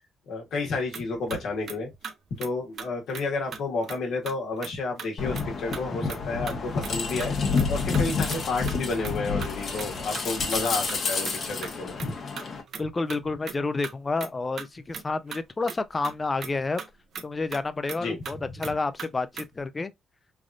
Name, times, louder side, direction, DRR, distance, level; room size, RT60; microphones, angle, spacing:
voice 1, 0.3-1.9 2.4-7.3 7.7-12.1 18.0-18.5, left 3 dB, 75° left, 1.2 m, -31 dB
sound 1, 0.9-1.0 1.3-1.4 1.7-1.8 2.0-2.1 2.4-2.5 2.8-3.2 3.5-4.0 4.2-4.7 5.0-5.1 5.3-5.5 5.7-6.2 6.5-8.4 8.7-9.1 9.4-10.2 10.5-10.6 10.9-12.1 12.4-13.6 13.8-13.9 14.2-14.3 14.6-15.0 15.3-15.8 16.0-16.1 16.4-16.5 16.8-16.9 17.1-18.0 18.2-18.3 18.6-18.7 19.0-19.1 19.3-19.6, right 6 dB, 60° right, 0.6 m, -38 dB
sound 2, 5.2-12.6, left 4 dB, 50° left, 0.9 m, -29 dB
voice 2, 12.8-16.8 17.2-19.9, left 3 dB, 25° left, 0.4 m, -29 dB
3.3 x 2.5 x 2.4 m
cardioid pair, 90°, 0 cm